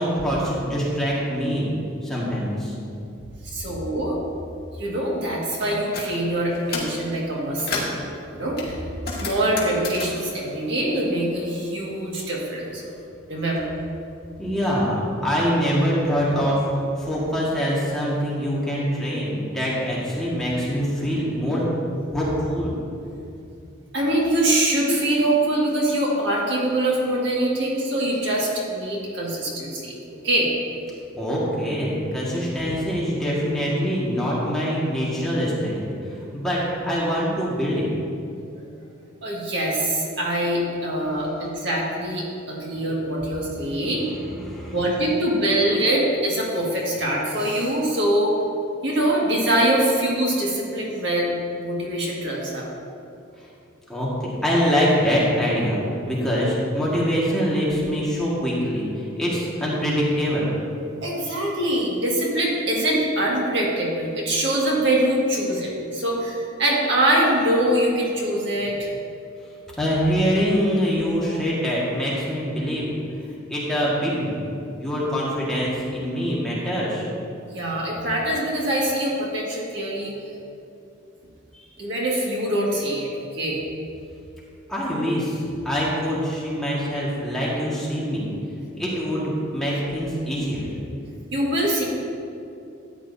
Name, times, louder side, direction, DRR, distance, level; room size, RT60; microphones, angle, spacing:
voice 1, 0.0-1.7 2.0-2.7 14.4-21.7 22.1-22.7 31.1-37.9 43.5-44.8 53.4-53.5 53.9-60.6 69.8-72.9 73.2-74.5 74.8-77.1 81.5-81.7 84.7-85.4 85.6-88.3 88.8-90.7, equal, ahead, -7 dB, 1.7 m, -24 dB
voice 2, 3.4-4.2 4.8-7.8 8.3-8.8 9.2-12.9 13.3-13.7 23.9-29.9 30.2-30.5 39.2-44.0 44.7-48.3 48.8-52.7 61.0-68.9 77.5-80.1 81.8-83.6 91.3-91.8, right 1 dB, 55° right, -3 dB, 1.8 m, -23 dB
sound 1, 5.6-6.1 6.5-7.0 7.4-8.0 8.6-11.5 11.8-12.9, left 3 dB, 50° left, 1.9 m, -33 dB
13.5 x 9.3 x 2.7 m, 2.6 s
head